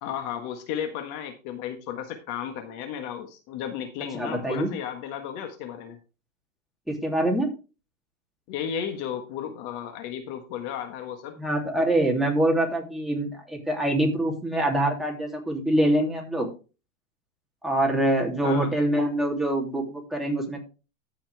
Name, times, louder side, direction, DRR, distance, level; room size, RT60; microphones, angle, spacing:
voice 1, 0.0-6.0 8.5-11.4 18.4-18.7, left 9 dB, 45° left, 6 dB, 1.6 m, -34 dB
voice 2, 4.1-4.7 6.9-7.5 11.4-16.5 17.6-20.6, right 1 dB, ahead, -1 dB, 2.9 m, -25 dB
14.5 x 5.9 x 3.5 m, 0.32 s
hypercardioid pair, 120°, 40 cm